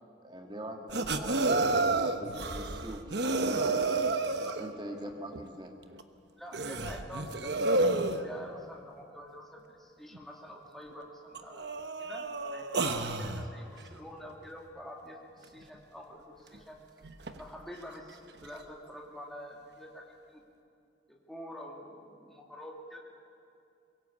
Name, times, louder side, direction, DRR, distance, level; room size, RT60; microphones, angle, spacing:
voice 1, 0.2-3.9 4.6-5.7, right 1 dB, 25° right, 3 dB, 1.8 m, -43 dB
sound 1, 0.9-4.7 5.3-5.4 6.0-6.1 6.5-8.2 10.1-10.2 10.9-11.0 11.3-13.5 16.5-16.6 17.0-17.4 18.4-18.5, right 2 dB, 60° right, 1.1 m, -30 dB
voice 2, 6.4-16.8 17.4-20.4 21.1-23.0, equal, ahead, -1 dB, 2.2 m, -47 dB
23.0 x 17.0 x 8.4 m, 2.5 s
head